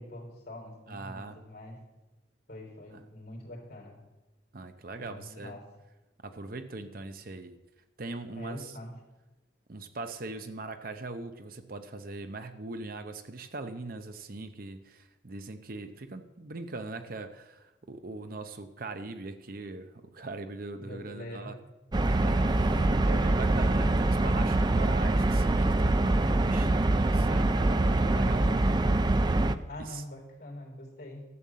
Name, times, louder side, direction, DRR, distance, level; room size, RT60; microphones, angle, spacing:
voice 1, 0.0-1.8 2.5-4.0 5.0-5.6 8.4-8.9 20.8-21.5 22.7-23.3 28.1-28.6 29.6-31.3, left 1 dB, 55° left, 0 dB, 3.7 m, -44 dB
voice 2, 0.9-1.4 2.9-3.0 4.5-5.5 6.2-7.6 8.0-8.7 9.7-21.6 22.0-28.4 29.8-30.0, right 3 dB, 50° right, 8 dB, 0.7 m, -41 dB
sound 1, 21.9-29.6, right 2 dB, 20° right, 0.4 m, -24 dB
12.5 x 7.2 x 7.4 m, 1.1 s
head